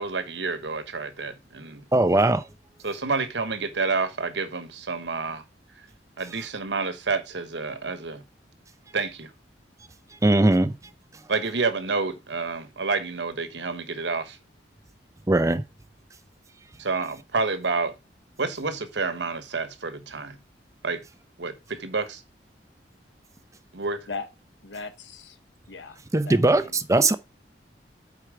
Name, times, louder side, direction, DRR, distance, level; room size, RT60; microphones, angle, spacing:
voice 1, 0.0-1.8 2.8-5.4 6.2-8.2 8.9-9.3 11.3-14.4 16.8-17.9 18.4-20.4 20.8-21.0 21.4-22.2 23.7-24.1, right 4 dB, 75° right, 1.1 m, -29 dB
voice 2, 1.9-2.4 10.2-10.7 15.3-15.6 26.1-27.2, right 2 dB, 15° right, 0.6 m, -20 dB
voice 3, 24.6-25.4 25.7-26.0 26.2-26.8, left 4 dB, 80° left, 1.0 m, -38 dB
8.4 x 4.6 x 4.8 m
head